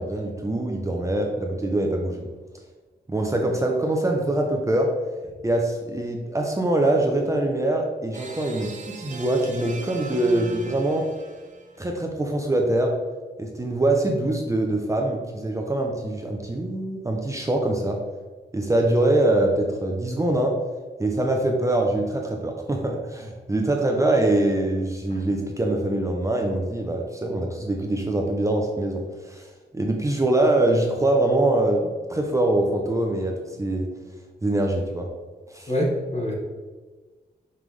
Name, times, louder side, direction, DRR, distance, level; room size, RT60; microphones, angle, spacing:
voice 1, 0.0-2.3 3.1-4.9 5.4-11.1 11.8-13.0 13.4-18.0 18.5-20.6 21.0-29.5 29.7-33.9 34.4-35.1 35.5-35.7, right 1 dB, 15° right, 1 dB, 0.7 m, -23 dB
sound 1, 8.1-11.8, right 3 dB, 45° right, 0.8 m, -40 dB
voice 2, 35.7-36.3, equal, 40° left, -1 dB, 1.5 m, -24 dB
5.7 x 5.3 x 3.3 m, 1.3 s
wide cardioid pair, 100°, 18 cm